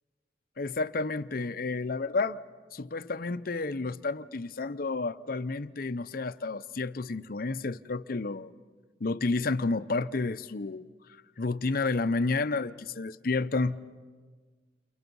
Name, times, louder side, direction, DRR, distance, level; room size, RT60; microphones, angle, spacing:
voice 1, 0.6-2.4 2.7-8.5 9.0-10.9 11.4-13.8, left 3 dB, 50° left, 0.6 m, -30 dB
29.5 x 29.5 x 5.4 m
head